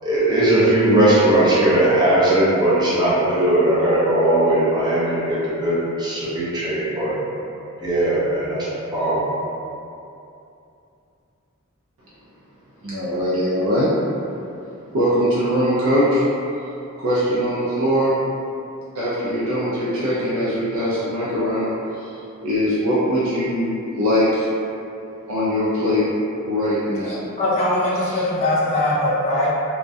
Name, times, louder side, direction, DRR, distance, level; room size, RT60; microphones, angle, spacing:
voice 1, 0.0-7.2 7.8-9.2, right 1 dB, 20° right, -9 dB, 0.6 m, -18 dB
voice 2, 12.8-13.9 14.9-16.2 17.0-18.2 18.9-22.2 22.4-24.5 25.3-26.0 26.5-27.2 28.0-28.2, equal, 70° right, -9 dB, 0.4 m, -21 dB
voice 3, 27.4-29.5, left 1 dB, 30° left, -8 dB, 0.4 m, -20 dB
2.3 x 2.1 x 2.6 m, 2.7 s
head